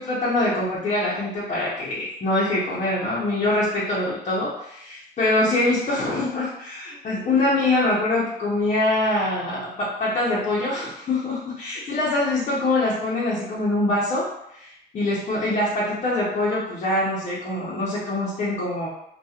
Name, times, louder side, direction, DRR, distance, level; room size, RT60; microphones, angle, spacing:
voice 1, 0.0-14.3 14.5-18.9, left 2 dB, 40° left, -7 dB, 0.7 m, -24 dB
2.8 x 2.3 x 2.3 m, 0.77 s
cardioid pair, 110°, 17 cm